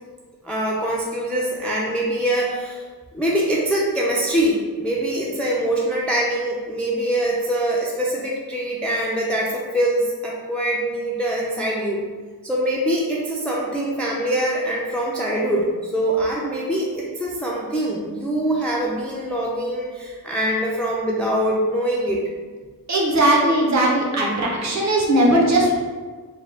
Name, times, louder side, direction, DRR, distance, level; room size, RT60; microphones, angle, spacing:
voice 1, 0.4-2.8 3.1-12.0 12.4-22.2, right 1 dB, 5° left, -4 dB, 0.3 m, -23 dB
voice 2, 22.9-25.8, right 1 dB, 50° right, -3 dB, 0.8 m, -18 dB
3.6 x 2.2 x 3.2 m, 1.5 s
wide cardioid pair, 130°, 36 cm